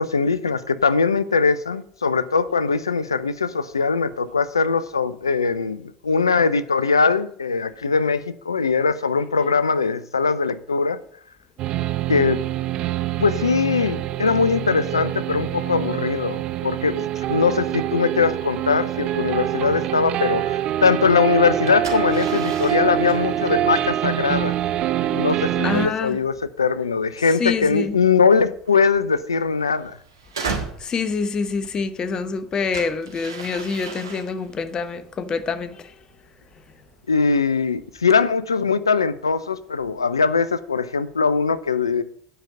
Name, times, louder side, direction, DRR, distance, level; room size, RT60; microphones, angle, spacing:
voice 1, 0.0-11.0 12.1-12.4 13.2-16.4 16.6-24.6 25.1-30.0 37.1-42.0, left 5 dB, 85° left, 0.5 m, -21 dB
sound 1, 11.6-25.9, right 12 dB, 45° right, 0.5 m, -25 dB
sound 2, 19.8-38.2, right 5 dB, 80° right, 1.7 m, -39 dB
voice 2, 25.6-26.2 27.2-28.0 30.8-35.9, left 5 dB, 35° left, 0.9 m, -26 dB
8.9 x 5.3 x 6.8 m
figure-of-eight pair, 70°, 2 cm